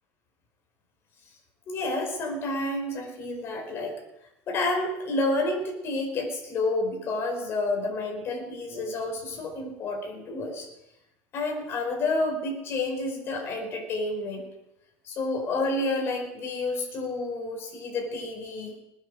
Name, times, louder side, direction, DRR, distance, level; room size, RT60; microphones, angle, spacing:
voice 1, 1.7-4.0 4.5-10.7 11.3-14.4 15.0-18.7, left 2 dB, 40° left, 1 dB, 5.0 m, -29 dB
20.5 x 9.4 x 6.5 m, 0.89 s
cardioid pair, 145°, 6 cm